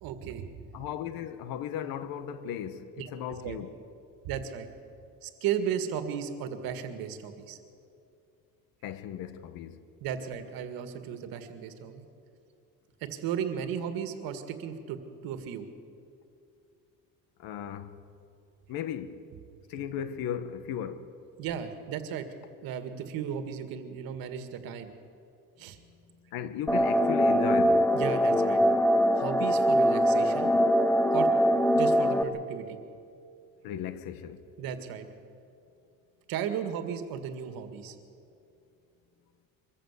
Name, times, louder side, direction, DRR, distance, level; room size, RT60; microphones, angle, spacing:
voice 1, 0.0-0.7 3.0-3.1 3.4-3.6 4.2-4.7 5.2-7.6 10.0-12.1 13.0-15.6 21.4-22.3 22.6-24.9 25.6-25.8 27.9-28.6 29.2-30.5 31.1-31.3 31.7-32.8 34.6-35.1 36.3-38.0, right 8 dB, 85° right, 1.9 m, -35 dB
voice 2, 0.7-3.8 8.8-9.8 17.4-18.0 18.7-19.2 19.7-21.1 26.3-27.9 33.6-34.4, left 9 dB, 85° left, 1.3 m, -36 dB
sound 1, 26.7-32.2, equal, 5° left, 0.8 m, -23 dB
23.5 x 14.5 x 8.3 m
cardioid pair, 125°, 35 cm